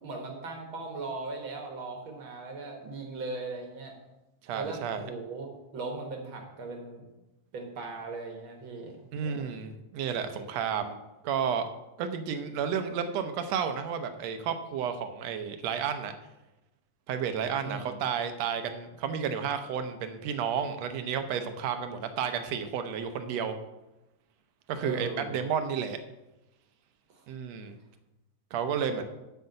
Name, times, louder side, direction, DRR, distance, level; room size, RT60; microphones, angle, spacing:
voice 1, 0.0-4.0 4.5-7.0 7.5-9.5 17.6-18.0 24.8-25.4 27.1-27.3 28.9-29.0, right 3 dB, 55° right, 3 dB, 1.7 m, -38 dB
voice 2, 4.4-5.0 9.1-11.0 11.2-11.7 12.0-16.1 17.1-23.6 24.7-26.0 27.3-27.8 28.5-29.0, right 7 dB, 70° right, 8 dB, 1.7 m, -32 dB
8.1 x 5.6 x 7.6 m, 0.98 s
omnidirectional pair, 3.4 m